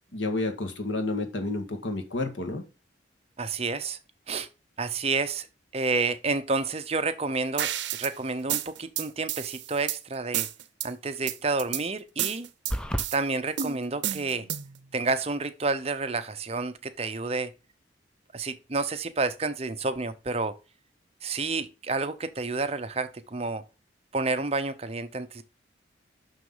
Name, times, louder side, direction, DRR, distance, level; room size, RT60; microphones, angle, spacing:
voice 1, 0.1-2.6, left 2 dB, 80° left, 1.9 m, -30 dB
voice 2, 3.4-4.0 4.3-4.5 4.8-5.5 5.7-7.7 8.0-10.5 10.8-12.5 13.1-14.5 14.9-17.5 18.3-20.6 21.2-23.6 24.1-25.4, right 3 dB, 30° right, 0.7 m, -29 dB
sound 1, 7.6-8.1 8.5-10.0 10.3-10.9 11.3-11.8 12.2-13.2 13.6-14.8, right 11 dB, 70° right, 0.7 m, -31 dB
sound 2, 12.7-13.1, equal, 5° left, 0.4 m, -29 dB
6.3 x 6.3 x 5.6 m
head